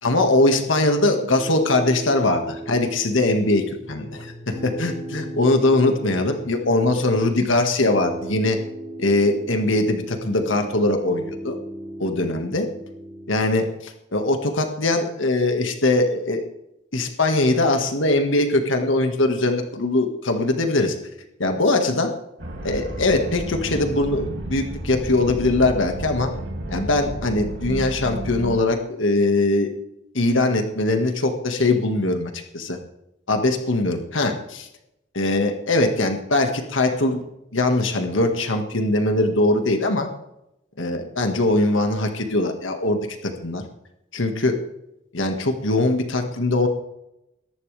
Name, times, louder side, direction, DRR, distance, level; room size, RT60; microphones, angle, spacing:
voice 1, 0.0-8.6 9.0-11.6 12.0-12.7 13.3-16.5 16.9-21.0 21.4-22.1 22.6-26.3 26.7-29.7 30.1-32.8 33.3-34.7 35.1-37.2 37.5-40.1 40.8-43.6 44.1-44.6 45.1-46.7, left 2 dB, 85° left, 4 dB, 1.9 m, -21 dB
Piano, 0.5-13.6, right 1 dB, 20° right, 6.6 m, -37 dB
sound 1, 22.4-28.5, right 1 dB, 65° right, 2.8 m, -32 dB
22.0 x 11.0 x 3.5 m, 0.84 s
head